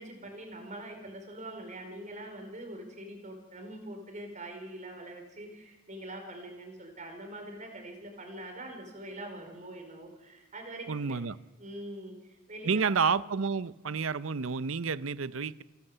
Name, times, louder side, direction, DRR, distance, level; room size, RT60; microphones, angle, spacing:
voice 1, 0.0-11.2 11.6-12.9, right 1 dB, 35° right, 4 dB, 4.8 m, -44 dB
voice 2, 10.9-11.4 12.6-15.6, right 5 dB, 75° right, 17 dB, 0.7 m, -30 dB
29.0 x 12.0 x 8.0 m, 1.1 s
head